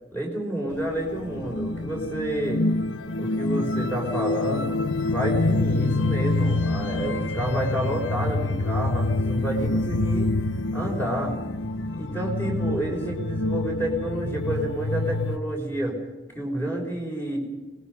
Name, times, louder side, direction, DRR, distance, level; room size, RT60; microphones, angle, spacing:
voice 1, 0.1-2.6 3.2-10.3 10.7-11.4 11.9-16.0 16.3-17.4, right 1 dB, 10° left, -1 dB, 5.8 m, -29 dB
sound 1, 0.7-15.4, left 2 dB, 80° left, 0.9 m, -26 dB
26.5 x 21.0 x 5.5 m, 1.2 s
head